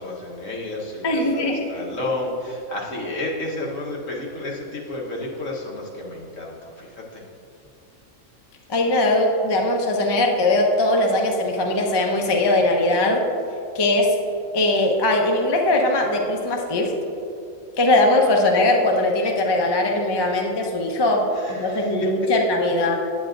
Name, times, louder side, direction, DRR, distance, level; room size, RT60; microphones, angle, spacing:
voice 1, 0.0-7.2 21.3-21.9, left 2 dB, 70° left, -3 dB, 1.6 m, -31 dB
voice 2, 1.0-1.7 8.7-13.2 13.7-14.2 14.5-16.9 17.8-23.0, left 2 dB, 30° left, 1 dB, 0.5 m, -20 dB
9.0 x 8.8 x 2.6 m, 2.6 s
omnidirectional pair, 1.4 m